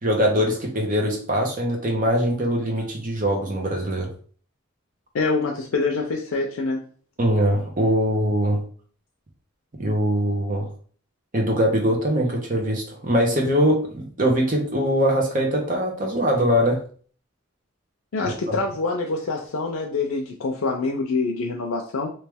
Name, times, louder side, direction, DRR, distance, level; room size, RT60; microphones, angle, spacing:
voice 1, 0.0-4.1 7.2-8.6 9.8-10.7 11.3-16.8 18.2-18.3, equal, 40° right, 0 dB, 1.0 m, -22 dB
voice 2, 5.1-6.8 18.1-22.1, left 3 dB, 85° left, 1 dB, 0.5 m, -25 dB
3.1 x 2.8 x 3.5 m, 0.44 s
head